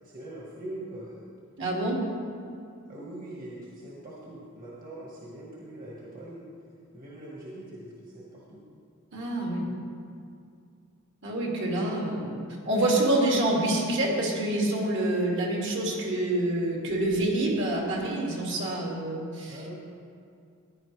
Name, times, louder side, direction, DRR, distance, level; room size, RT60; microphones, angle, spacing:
voice 1, 0.0-1.2 2.9-6.4 6.9-8.6 19.5-19.8, right 1 dB, 40° right, -5 dB, 1.7 m, -42 dB
voice 2, 1.6-2.0 9.1-9.7 11.2-19.6, right 1 dB, 60° right, -3 dB, 2.3 m, -27 dB
15.0 x 10.5 x 3.3 m, 2.4 s
head